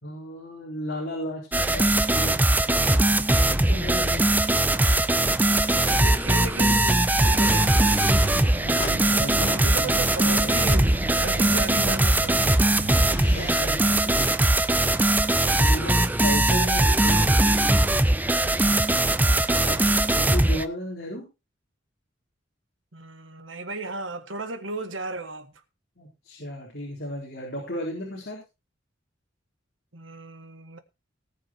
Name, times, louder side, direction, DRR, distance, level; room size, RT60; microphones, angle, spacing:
voice 1, 0.0-3.0 3.4-4.4 8.6-10.5 13.0-14.3 15.6-17.7 19.7-19.8 20.2-21.2 26.0-28.4, equal, 55° left, 4.1 m, -35 dB
sound 1, 1.5-20.6, right 1 dB, 10° right, 0.5 m, -21 dB
voice 2, 4.7-5.1 5.6-8.1 9.6-12.4 15.8-16.2 19.4-19.9 22.9-25.5 29.9-30.8, right 3 dB, 75° right, 1.6 m, -35 dB
sound 2, 6.5-15.2 15.9-16.0, left 2 dB, 30° left, 2.9 m, -42 dB
sound 3, 7.1-13.5, right 1 dB, 40° right, 2.0 m, -35 dB
18.5 x 6.5 x 4.5 m
head